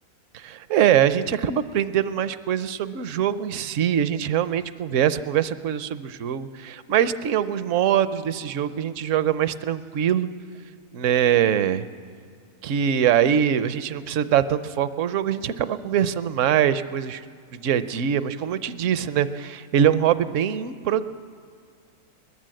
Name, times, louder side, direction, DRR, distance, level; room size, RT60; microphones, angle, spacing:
voice 1, 0.3-10.3 10.9-11.8 12.6-17.2 17.5-21.0, right 9 dB, 60° right, 13 dB, 1.0 m, -23 dB
22.0 x 20.5 x 7.7 m, 2.1 s
omnidirectional pair, 1.6 m